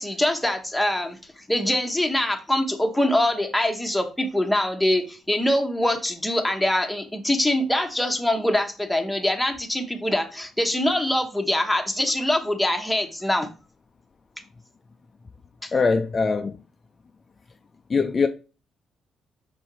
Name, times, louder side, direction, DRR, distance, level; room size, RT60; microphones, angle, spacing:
voice 1, 0.0-13.5 15.6-15.7, left 1 dB, 5° left, 1.1 m, -24 dB
voice 2, 15.7-16.6 17.9-18.3, left 4 dB, 35° left, 0.5 m, -21 dB
5.4 x 3.8 x 4.6 m
cardioid pair, 90°, 0 cm